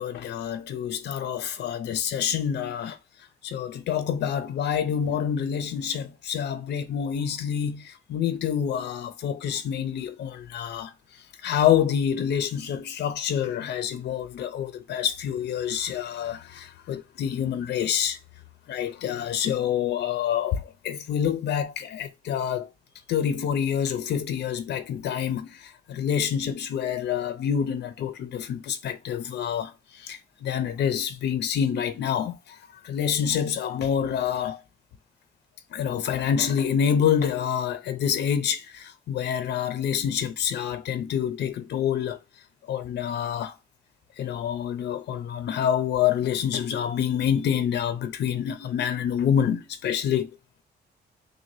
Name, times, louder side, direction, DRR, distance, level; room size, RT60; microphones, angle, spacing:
voice 1, 0.0-3.0 3.4-10.9 11.4-18.2 18.7-22.7 23.1-32.6 32.8-34.6 35.7-42.2 42.7-43.5 44.2-50.3, left 8 dB, 90° left, 0.6 m, -27 dB
6.3 x 2.2 x 2.7 m
wide cardioid pair, 165°, 17 cm